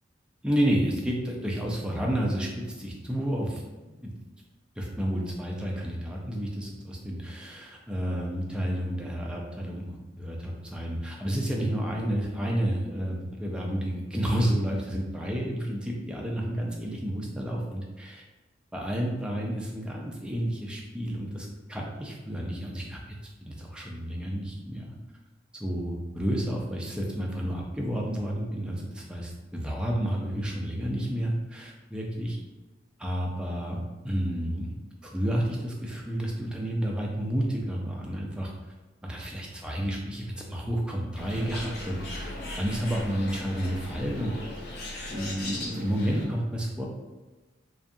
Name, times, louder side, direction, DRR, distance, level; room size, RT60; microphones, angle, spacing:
voice 1, 0.4-3.6 4.0-4.1 4.8-18.2 18.7-23.2 23.4-24.9 25.6-32.4 33.0-33.8 34.0-34.7 35.0-38.5 39.0-44.3 45.1-46.9, equal, 5° right, -2 dB, 0.3 m, -30 dB
Bird, 41.1-46.2, left 1 dB, 55° left, 0.5 m, -38 dB
2.6 x 2.2 x 2.5 m, 1.2 s
head